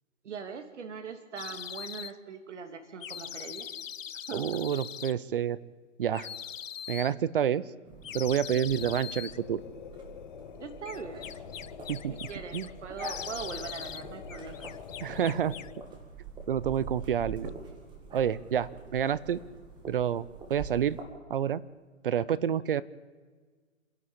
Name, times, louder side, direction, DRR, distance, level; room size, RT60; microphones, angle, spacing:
voice 1, 0.2-3.7 4.3-4.5 10.6-11.3 12.3-14.7, right 5 dB, 60° right, 7 dB, 2.8 m, -41 dB
sound 1, 1.4-2.1 3.0-5.1 6.1-7.1 8.0-9.4 10.9-12.7 13.0-14.0 14.3-15.8, left 9 dB, 75° left, 0.8 m, -41 dB
voice 2, 4.3-5.6 6.0-6.3 6.9-7.6 8.1-9.6 11.9-12.2 12.5-12.7 15.0-15.5 16.5-17.5 18.1-19.4 19.9-20.2 20.5-21.0 21.3-21.6 22.0-22.8, right 9 dB, 45° right, 19 dB, 0.7 m, -28 dB
sound 2, 7.9-21.0, right 4 dB, 10° right, 2.2 m, -46 dB
sound 3, 8.6-16.0, left 9 dB, 40° left, 1.4 m, -46 dB
27.5 x 11.5 x 8.7 m, 1.4 s
hypercardioid pair, 150°, 39 cm